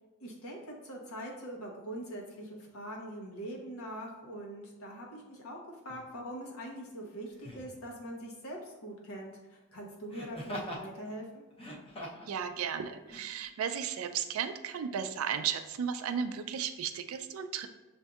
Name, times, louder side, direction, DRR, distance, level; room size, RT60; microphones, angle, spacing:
voice 1, 0.2-5.6 5.8-11.4, right 1 dB, 90° left, 0 dB, 0.9 m, -43 dB
Laughter, 5.9-6.1 7.4-7.8 10.1-10.9 11.5-12.3 13.1-13.2, equal, 25° left, 0.6 m, -42 dB
voice 2, 12.3-17.7, right 7 dB, 80° right, 9 dB, 0.4 m, -34 dB
6.3 x 2.6 x 2.3 m, 1.2 s
head